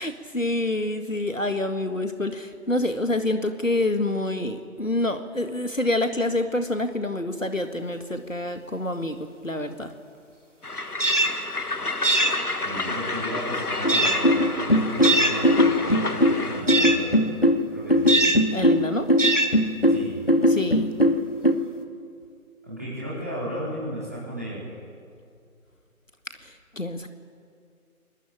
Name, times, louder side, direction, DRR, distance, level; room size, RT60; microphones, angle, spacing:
voice 1, 0.0-9.2 9.4-9.9 18.5-19.1 20.5-20.9 26.4-27.1, left 1 dB, 60° left, 7 dB, 2.0 m, -27 dB
Train, 10.6-16.7, left 3 dB, 85° left, 1.7 m, -30 dB
sound 1, 11.0-11.3 12.0-12.4 13.9-14.2 15.0-15.4 16.7-17.0 18.1-18.4 19.2-19.5, right 2 dB, 55° right, 2.8 m, -21 dB
voice 2, 12.6-17.2 17.7-18.2 19.9-20.2 22.6-24.7, equal, 10° right, -9 dB, 4.8 m, -34 dB
sound 2, 13.8-21.5, equal, 40° left, 2.0 m, -20 dB
25.5 x 20.5 x 8.9 m, 2.3 s
figure-of-eight pair, 180°, 44 cm